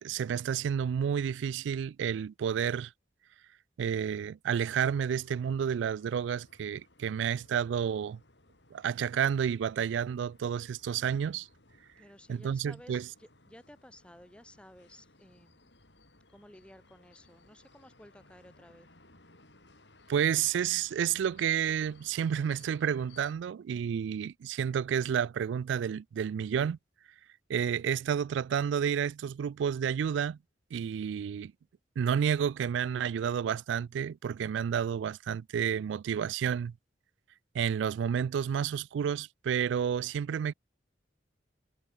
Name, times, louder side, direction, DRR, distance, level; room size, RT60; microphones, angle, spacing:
voice 1, 0.0-2.9 3.8-8.2 8.7-11.5 12.3-13.1 20.1-26.8 27.5-30.4 30.7-31.5 32.0-36.7 37.5-40.5, right 8 dB, 75° right, 0.3 m, -30 dB
sound 1, 4.5-23.3, left 2 dB, 70° left, 6.3 m, -61 dB
voice 2, 12.0-15.7 16.3-18.9, left 1 dB, 5° left, 1.5 m, -55 dB
head